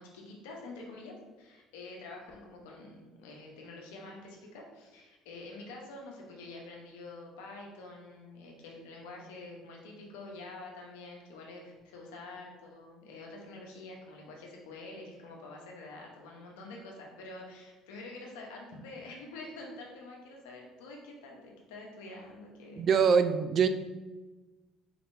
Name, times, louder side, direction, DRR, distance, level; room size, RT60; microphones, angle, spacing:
voice 1, 0.0-22.8, left 2 dB, 85° left, 0 dB, 0.9 m, -47 dB
voice 2, 22.8-23.7, right 6 dB, 50° right, 10 dB, 0.3 m, -23 dB
4.3 x 4.0 x 2.7 m, 1.2 s
hypercardioid pair, 70°, 0 cm